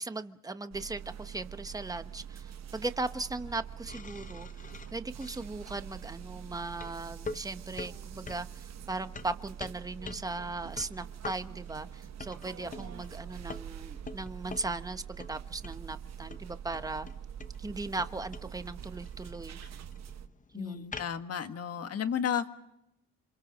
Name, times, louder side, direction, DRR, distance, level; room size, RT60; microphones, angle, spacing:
voice 1, 0.0-4.5 4.9-17.1 17.6-19.6 20.5-20.8, right 2 dB, 10° right, 1.1 m, -38 dB
sound 1, 0.7-20.3, right 9 dB, 60° right, 1.1 m, -45 dB
sound 2, 3.9-21.3, left 4 dB, 25° left, 0.9 m, -47 dB
voice 2, 20.5-22.5, left 8 dB, 55° left, 1.7 m, -33 dB
28.0 x 26.0 x 5.3 m
cardioid pair, 90°, 30 cm